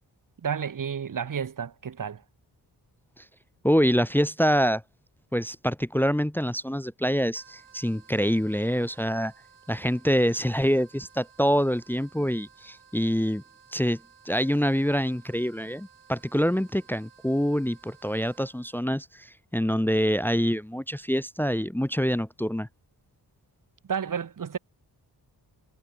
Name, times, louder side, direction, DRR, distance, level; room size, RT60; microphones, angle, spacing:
voice 1, 0.4-2.2 23.9-24.6, right 7 dB, 50° right, 1.2 m, -31 dB
voice 2, 3.6-4.8 5.3-9.3 9.7-13.4 13.7-14.0 14.2-22.7, equal, 5° left, 0.9 m, -25 dB
sound 1, 7.4-18.8, right 7 dB, 75° right, 6.6 m, -57 dB
wide cardioid pair, 135°, 41 cm